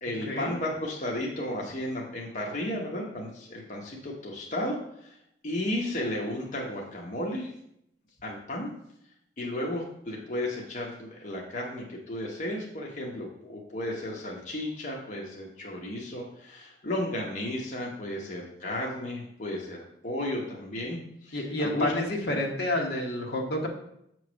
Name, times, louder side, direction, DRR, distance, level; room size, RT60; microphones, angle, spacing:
voice 1, 0.0-5.1 5.4-7.5 8.2-8.7 9.4-21.9, left 1 dB, 45° left, -2 dB, 1.0 m, -34 dB
voice 2, 21.3-23.7, left 1 dB, 65° left, 1 dB, 1.2 m, -29 dB
7.2 x 3.1 x 6.1 m, 0.75 s
head